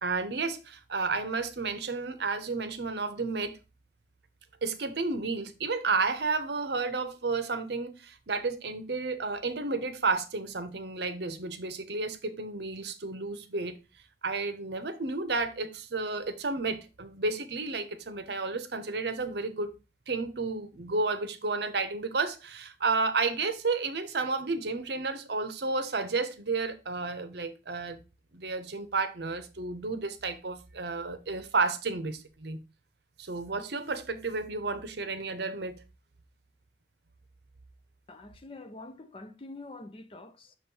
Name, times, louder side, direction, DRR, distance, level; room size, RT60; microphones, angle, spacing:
voice 1, 0.0-3.6 4.6-13.8 14.2-19.7 20.1-28.0 28.3-32.6 33.2-35.8, right 3 dB, 60° right, 0.8 m, -32 dB
voice 2, 38.1-40.6, left 2 dB, 30° left, 0.5 m, -46 dB
6.2 x 3.1 x 5.3 m
head